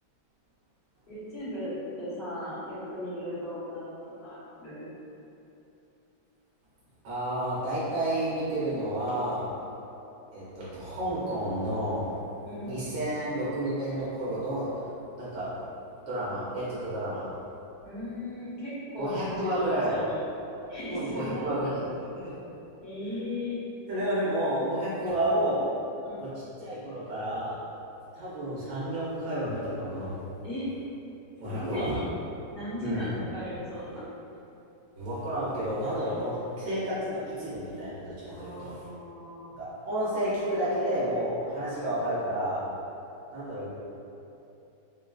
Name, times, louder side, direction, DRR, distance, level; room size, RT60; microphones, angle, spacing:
voice 1, 1.1-3.9 4.2-4.9 12.4-12.7 17.8-20.2 20.7-21.5 22.8-23.6 26.0-26.3 30.4-30.7 31.4-32.0 32.5-34.1 38.3-39.5, left 1 dB, 40° left, -13 dB, 1.3 m, -37 dB
voice 2, 7.0-9.5 10.3-12.2 12.6-14.9 15.2-15.5 16.1-17.2 19.0-20.0 20.9-21.7 22.2-22.3 23.9-25.7 26.2-26.3 26.6-27.6 28.1-30.2 31.4-32.0 32.8-33.1 35.0-38.9 39.6-42.6 43.3-43.7, right 1 dB, 60° right, -10 dB, 1.0 m, -30 dB
3.7 x 2.2 x 2.3 m, 2.9 s
omnidirectional pair, 1.9 m